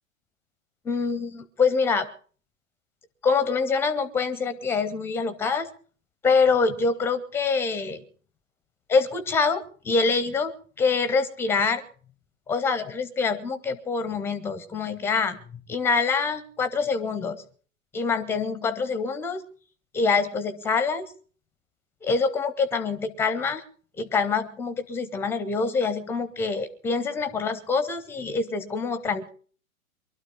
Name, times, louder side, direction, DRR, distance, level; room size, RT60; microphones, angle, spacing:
voice 1, 0.9-2.1 3.2-5.7 6.2-8.0 8.9-10.5 10.8-11.8 12.5-15.4 15.7-17.4 17.9-19.4 19.9-21.1 22.0-23.6 24.0-29.3, left 4 dB, 5° left, 13 dB, 0.6 m, -25 dB
23.0 x 12.5 x 3.8 m, 0.42 s
figure-of-eight pair, 110°, 42 cm